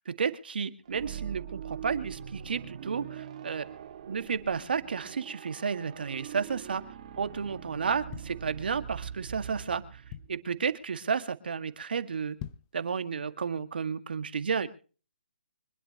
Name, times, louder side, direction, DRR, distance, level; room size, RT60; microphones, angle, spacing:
voice 1, 0.1-3.7 4.1-6.8 7.2-10.0 10.3-12.4 12.7-14.7, right 6 dB, 65° right, 10 dB, 1.9 m, -32 dB
sound 1, 0.8-10.6, right 9 dB, 40° right, 1.9 m, -43 dB
sound 2, 8.1-9.1 9.6-9.7 9.8-10.6 11.1-11.3 11.6-11.7 12.2-12.8 13.3-13.4, left 11 dB, 20° left, 0.8 m, -44 dB
25.5 x 11.5 x 3.0 m, 0.37 s
hypercardioid pair, 155°, 6 cm